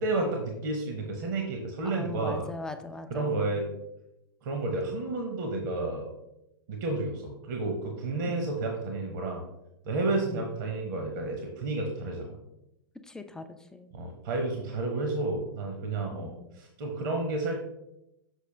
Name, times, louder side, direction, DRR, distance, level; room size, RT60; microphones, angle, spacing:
voice 1, 0.0-2.4 3.1-3.6 4.4-6.1 6.7-9.4 9.8-12.4 13.9-17.5, right 2 dB, 55° right, 2 dB, 1.1 m, -31 dB
voice 2, 1.8-3.5 8.3-8.5 10.2-10.5 13.0-13.9 16.1-16.5, left 3 dB, 5° left, 7 dB, 0.5 m, -41 dB
6.5 x 4.9 x 3.3 m, 0.87 s
figure-of-eight pair, 100°, 12 cm